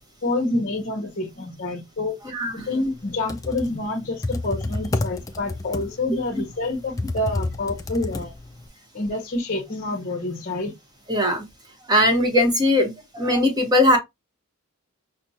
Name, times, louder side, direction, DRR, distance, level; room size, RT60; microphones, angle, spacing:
voice 1, 0.2-2.2 2.5-8.3 8.9-10.7, left 2 dB, 45° left, 0.8 m, -27 dB
voice 2, 2.2-2.7 11.1-11.5 11.9-14.0, left 1 dB, 20° right, 0.9 m, -20 dB
Computer keyboard, 3.1-8.7, left 2 dB, 15° left, 0.3 m, -30 dB
5.9 x 2.0 x 2.7 m
head